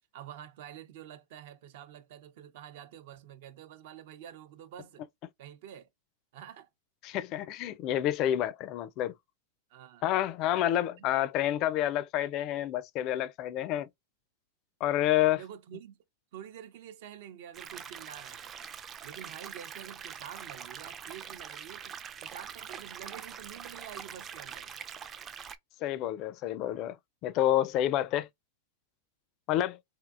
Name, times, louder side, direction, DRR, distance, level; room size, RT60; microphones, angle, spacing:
voice 1, 0.1-5.0 5.4-5.9 6.3-6.7 9.7-10.1 11.0-11.1 15.3-16.0 16.3-18.7 19.0-24.7, right 10 dB, 65° right, 0.6 m, -48 dB
voice 2, 7.0-9.1 10.0-13.9 14.8-15.4 25.8-27.0 27.2-28.3 29.5-29.8, left 12 dB, 45° left, 0.4 m, -29 dB
sound 1, 17.5-25.6, right 7 dB, 25° right, 0.4 m, -44 dB
3.5 x 2.7 x 2.4 m
hypercardioid pair, 120°, 0 cm